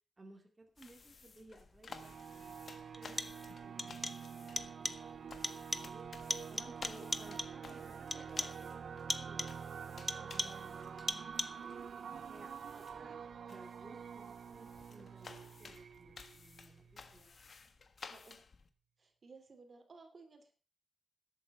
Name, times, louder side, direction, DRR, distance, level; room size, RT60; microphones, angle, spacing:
voice 1, 0.2-2.8 3.6-6.1 6.5-9.6 10.0-10.8 11.4-11.9 12.3-13.2 13.5-17.3, right 2 dB, 25° right, 2 dB, 2.5 m, -59 dB
sound 1, 0.8-18.7, left 4 dB, 50° left, 1.4 m, -56 dB
sound 2, 1.9-2.0 2.9-3.5 3.8-4.3 4.6-5.1 5.4-6.0 6.3-7.7 8.1-8.7 9.1-9.7 10.1-10.7 11.1-11.7, left 1 dB, 10° left, 0.8 m, -40 dB
sound 3, 1.9-17.2, right 7 dB, 70° right, 0.5 m, -47 dB
voice 2, 3.0-3.4 7.7-7.8 18.1-18.4 19.0-20.5, right 3 dB, 45° right, 6 dB, 2.8 m, -57 dB
13.0 x 8.5 x 6.0 m, 0.36 s
wide cardioid pair, 115°, 0 cm